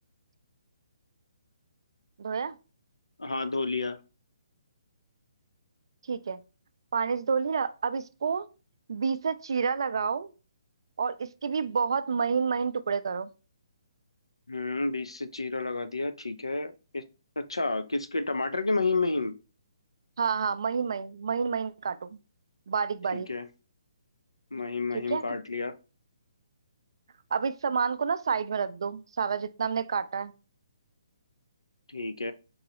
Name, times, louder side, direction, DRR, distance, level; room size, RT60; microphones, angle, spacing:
voice 1, 2.2-2.6 6.1-6.4 6.9-8.5 8.9-10.3 11.0-13.3 20.2-22.2 22.7-23.3 24.9-25.2 27.3-30.3, right 6 dB, 60° right, 0.4 m, -29 dB
voice 2, 3.2-4.0 14.5-17.0 17.4-19.4 23.1-23.5 24.5-25.8 31.9-32.3, left 3 dB, 80° left, 0.5 m, -30 dB
3.9 x 3.0 x 2.7 m
figure-of-eight pair, 135°, 3 cm